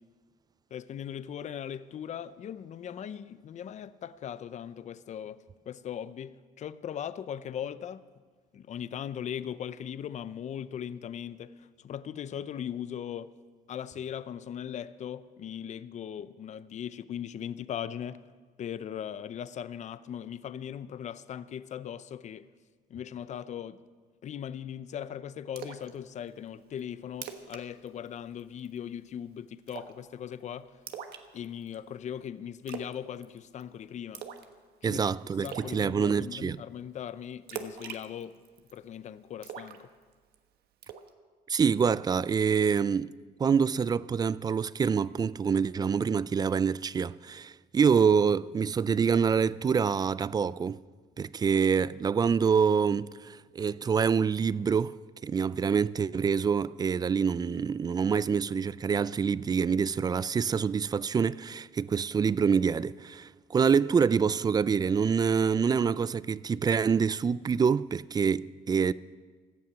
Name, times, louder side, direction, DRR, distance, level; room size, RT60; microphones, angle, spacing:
voice 1, 0.7-8.0 8.5-13.3 13.7-18.2 18.6-22.5 22.9-23.9 24.2-30.7 31.3-34.2 34.8-38.4 38.7-39.9, left 9 dB, 45° left, 0.6 m, -39 dB
Splash splatter, 25.6-25.9 26.3-26.4 26.8-26.9 27.1-27.6 27.9-28.1 28.4-28.8 29.7-30.0 30.9-31.7 32.7-33.0 33.2-33.6 34.1-34.5 34.8-34.9 35.4-35.7 37.5-38.8 39.4-40.3 40.8-41.1, right 8 dB, 70° right, 1.2 m, -41 dB
voice 2, 34.8-36.6 41.5-43.1 43.4-50.8 51.2-55.0 55.2-68.9, right 6 dB, 25° right, 0.3 m, -26 dB
17.0 x 12.0 x 6.0 m
cardioid pair, 110°, 17 cm